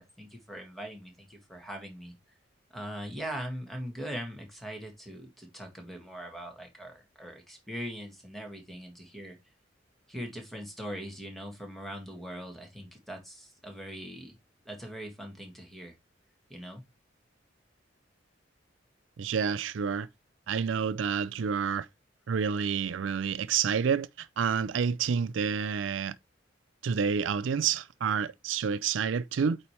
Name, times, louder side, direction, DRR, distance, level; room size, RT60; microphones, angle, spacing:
voice 1, 0.0-2.4 2.7-9.4 10.1-14.4 14.7-16.0 16.5-16.8, equal, ahead, 1.9 m, -41 dB
voice 2, 19.2-20.1 20.5-21.9 22.3-26.1 26.8-29.6, right 6 dB, 85° right, 0.4 m, -29 dB
8.5 x 3.3 x 4.3 m
head